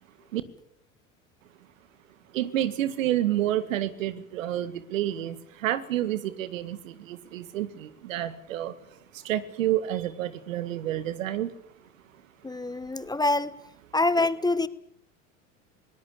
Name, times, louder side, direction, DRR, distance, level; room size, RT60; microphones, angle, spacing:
voice 1, 2.3-8.7 9.1-11.5, right 12 dB, 75° right, 14 dB, 1.9 m, -29 dB
voice 2, 12.4-13.6 13.9-14.7, left 2 dB, 10° left, 16 dB, 1.1 m, -25 dB
21.5 x 18.5 x 8.6 m, 0.74 s
hypercardioid pair, 90°, 39 cm